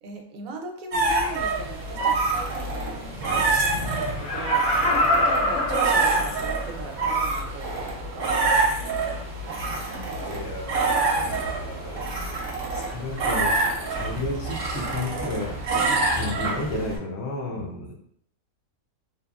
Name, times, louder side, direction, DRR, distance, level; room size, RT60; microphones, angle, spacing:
voice 1, 0.0-4.6 5.2-8.4 9.9-10.5 15.7-16.3 17.5-17.9, right 4 dB, 80° right, 3 dB, 1.0 m, -39 dB
sound 1, 0.9-17.0, right 3 dB, 50° right, 0.8 m, -26 dB
Laughter, 4.1-6.7 7.2-7.3, left 1 dB, 85° left, 1.1 m, -25 dB
voice 2, 10.2-12.3 12.7-13.6 13.9-15.6 16.1-17.9, left 2 dB, 60° left, 0 dB, 0.7 m, -33 dB
2.9 x 2.3 x 2.3 m, 0.65 s
omnidirectional pair, 1.5 m